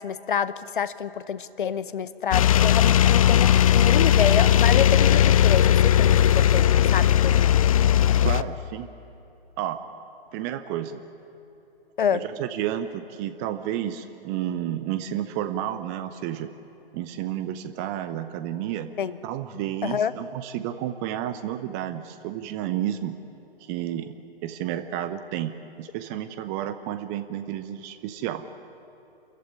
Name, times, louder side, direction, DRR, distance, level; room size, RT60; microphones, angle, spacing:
voice 1, 0.0-7.7 12.0-12.2 19.0-19.2 19.8-20.1, left 7 dB, 55° left, 15 dB, 0.9 m, -28 dB
sound 1, 2.3-8.4, left 10 dB, 35° left, 0.5 m, -18 dB
voice 2, 8.2-8.9 9.6-9.8 10.3-11.0 12.1-16.5 16.9-18.9 19.2-23.1 23.6-24.1 24.4-25.5 25.8-28.4, right 11 dB, 15° right, 11 dB, 0.6 m, -31 dB
27.5 x 14.5 x 9.7 m, 3.0 s
figure-of-eight pair, 125°, 31 cm